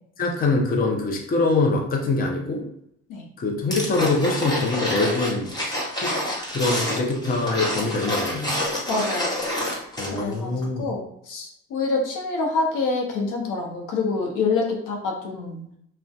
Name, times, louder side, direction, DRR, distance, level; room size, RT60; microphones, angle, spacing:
voice 1, 0.2-2.6 3.4-5.5 5.9-6.1 6.5-8.6 10.0-10.9, left 3 dB, 25° left, 0 dB, 0.6 m, -24 dB
sound 1, 3.7-10.3 10.6-10.7, left 1 dB, 10° left, 1.0 m, -28 dB
voice 2, 8.9-9.3 10.1-15.6, left 3 dB, 70° left, 0 dB, 0.7 m, -26 dB
2.5 x 2.1 x 2.3 m, 0.73 s
supercardioid pair, 65°, 32 cm